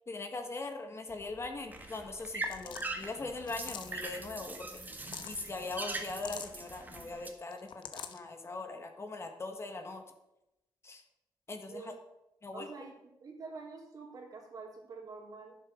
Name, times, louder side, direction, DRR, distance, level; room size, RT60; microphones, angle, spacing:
voice 1, 0.1-4.8 5.2-10.0 10.8-11.0 11.5-11.9 12.4-12.7, left 3 dB, 35° left, 5 dB, 1.4 m, -41 dB
sound 1, 1.1-7.3, right 2 dB, 20° right, 1.7 m, -42 dB
sound 2, 2.4-2.9 3.5-4.1 4.8-5.4 6.1-6.6 7.5-8.2, left 8 dB, 75° left, 0.9 m, -44 dB
voice 2, 12.5-15.6, right 4 dB, 50° right, -1 dB, 3.4 m, -47 dB
10.0 x 7.6 x 6.4 m, 0.93 s
cardioid pair, 90°, 8 cm